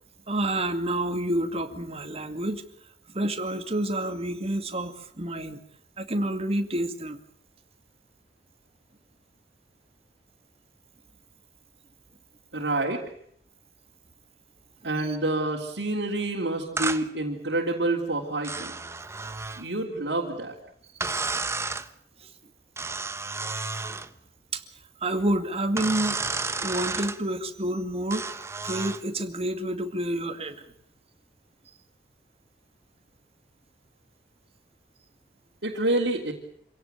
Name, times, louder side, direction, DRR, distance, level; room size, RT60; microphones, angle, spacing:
voice 1, 0.3-2.6 3.1-5.6 6.0-7.2 21.0-21.1 22.2-22.3 24.5-24.6 25.0-26.2 26.6-28.3 28.6-30.6, right 1 dB, 35° right, 8 dB, 2.2 m, -28 dB
voice 2, 12.5-13.0 14.8-18.7 19.6-20.6 35.6-36.3, right 2 dB, 80° right, -2 dB, 3.4 m, -28 dB
wood window shutter very stiff heavy creak on offmic, 16.8-17.0 18.4-19.7 21.0-21.9 22.8-24.1 25.8-27.2 28.1-29.0, right 3 dB, 15° right, 1.0 m, -31 dB
27.0 x 17.5 x 9.3 m, 0.67 s
head